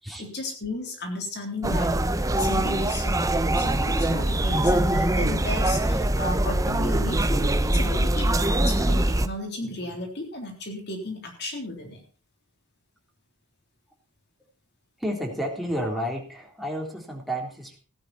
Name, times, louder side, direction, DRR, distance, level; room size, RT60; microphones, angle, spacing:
voice 1, 0.2-12.0, left 2 dB, 50° left, 3 dB, 3.6 m, -34 dB
sound 1, 1.6-9.3, right 1 dB, 15° right, 0.8 m, -23 dB
voice 2, 15.0-17.8, equal, ahead, 1 dB, 3.5 m, -31 dB
15.5 x 11.5 x 4.3 m, 0.39 s
head